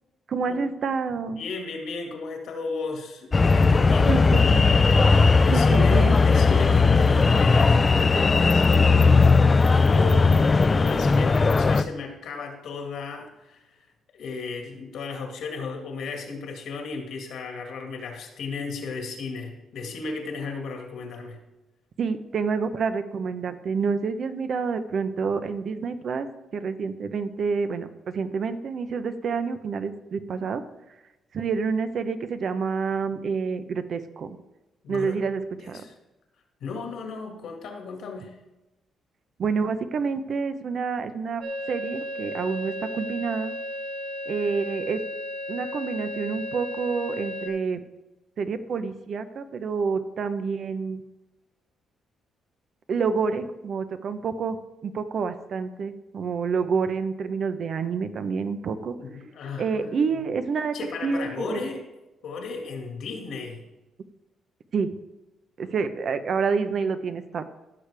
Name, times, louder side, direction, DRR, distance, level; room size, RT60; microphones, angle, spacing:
voice 1, 0.3-1.4 4.1-4.7 5.5-6.2 22.0-26.3 26.5-30.6 31.3-34.4 34.9-35.8 39.4-41.4 41.7-43.5 44.3-45.0 45.5-47.8 48.4-51.0 52.9-59.0 59.6-60.8 61.0-61.4 64.7-64.9 65.6-67.5, right 5 dB, 55° right, 10 dB, 0.8 m, -28 dB
voice 2, 1.3-4.3 5.0-9.2 9.5-13.8 14.1-21.4 34.8-35.2 35.6-35.9 36.6-38.3 59.0-60.0 60.7-61.8 62.2-63.7, left 4 dB, 75° left, 3 dB, 2.0 m, -35 dB
sound 1, 3.3-11.8, left 4 dB, 30° left, 0.5 m, -18 dB
sound 2, 41.4-47.5, left 1 dB, 75° right, 1.8 m, -34 dB
14.5 x 6.7 x 3.4 m, 1.0 s
cardioid pair, 90°, 0 cm